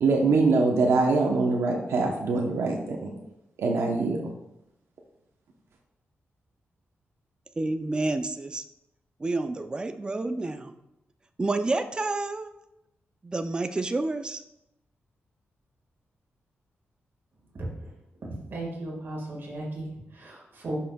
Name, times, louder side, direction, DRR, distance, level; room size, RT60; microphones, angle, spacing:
voice 1, 0.0-3.1 3.6-4.3, right 3 dB, 80° right, 0 dB, 0.9 m, -23 dB
voice 2, 7.6-8.6 9.2-10.7 11.4-12.5 13.2-14.4, right 2 dB, 20° right, 8 dB, 0.4 m, -29 dB
voice 3, 18.2-20.8, right 1 dB, 55° right, -1 dB, 1.8 m, -36 dB
11.5 x 5.6 x 2.3 m, 0.87 s
wide cardioid pair, 130°, 4 cm